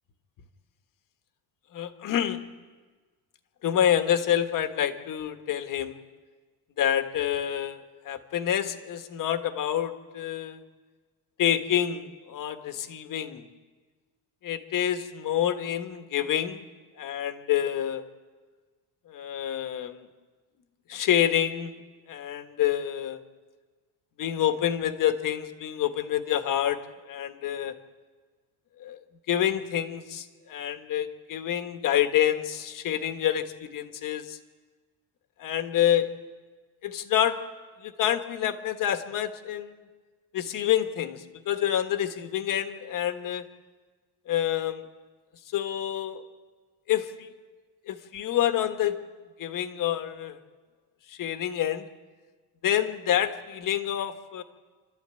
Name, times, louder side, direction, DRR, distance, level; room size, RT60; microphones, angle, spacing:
voice 1, 1.7-2.4 3.6-6.0 6.8-10.6 11.4-13.5 14.4-16.6 17.0-18.0 19.1-20.1 20.9-21.8 22.1-23.2 24.2-27.7 28.8-29.0 29.3-34.4 35.4-36.1 36.8-37.4 37.8-39.8 40.3-43.5 44.3-44.8 45.5-46.2 46.9-47.3 47.9-49.0 49.4-50.4 51.1-51.9 52.6-54.4, left 10 dB, 45° left, 8 dB, 1.5 m, -27 dB
29.0 x 13.0 x 9.0 m, 1.4 s
cardioid pair, 165°, 43 cm